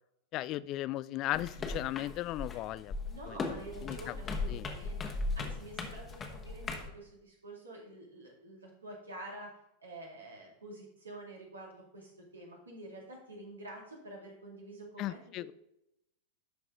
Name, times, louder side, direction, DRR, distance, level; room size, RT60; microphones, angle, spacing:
voice 1, 0.3-2.9 3.3-3.4 3.8-4.7 15.0-15.5, left 15 dB, 35° left, 17 dB, 0.3 m, -37 dB
sound 1, 1.3-6.9, left 3 dB, 20° left, 1.3 m, -38 dB
voice 2, 3.1-5.0 5.3-9.5 9.8-15.2, right 1 dB, 75° right, -1 dB, 2.5 m, -48 dB
12.0 x 4.8 x 3.8 m, 0.84 s
figure-of-eight pair, 90°, 0 cm